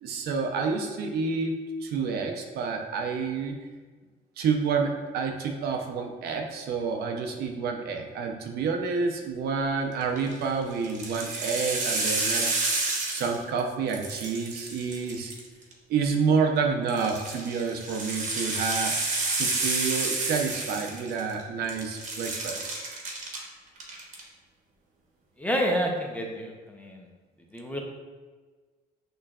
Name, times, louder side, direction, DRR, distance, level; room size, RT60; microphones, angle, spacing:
voice 1, 0.0-3.6 4.4-12.5 13.1-15.3 15.9-18.9 19.4-22.8, right 5 dB, 70° right, 3 dB, 0.7 m, -29 dB
sound 1, 10.0-10.3 10.8-13.6 13.9-15.7 16.9-21.4 21.7-23.4 23.8-24.2, right 3 dB, 45° right, 1.1 m, -30 dB
voice 2, 25.4-27.0 27.5-27.8, equal, 10° left, 0 dB, 0.6 m, -29 dB
6.4 x 3.2 x 2.4 m, 1.4 s
cardioid pair, 110°, 17 cm